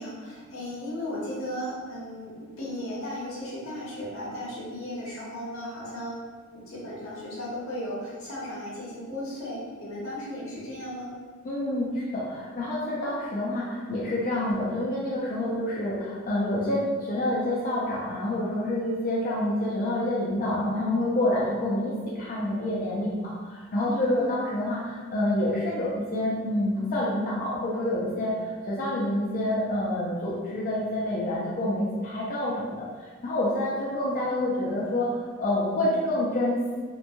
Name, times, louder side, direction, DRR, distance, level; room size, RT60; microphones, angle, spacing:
voice 1, 0.0-11.1 23.8-24.3, left 1 dB, 80° left, -6 dB, 1.0 m, -36 dB
voice 2, 11.4-36.8, left 1 dB, 40° left, -6 dB, 0.4 m, -28 dB
3.0 x 2.1 x 2.5 m, 1.5 s
head